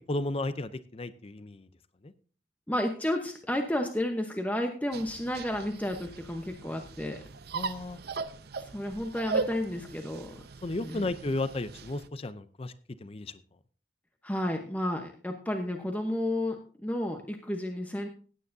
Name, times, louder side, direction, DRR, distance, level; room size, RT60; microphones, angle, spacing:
voice 1, 0.1-1.7 2.0-2.1 7.5-8.0 10.6-12.7 13.0-13.3, left 2 dB, 30° left, 13 dB, 0.5 m, -33 dB
voice 2, 2.7-7.2 8.6-10.4 10.8-11.1 14.2-18.1, left 1 dB, 10° left, 4 dB, 0.9 m, -32 dB
sound 1, 4.9-12.1, right 4 dB, 60° right, 0.7 m, -38 dB
16.5 x 9.2 x 2.7 m, 0.40 s
head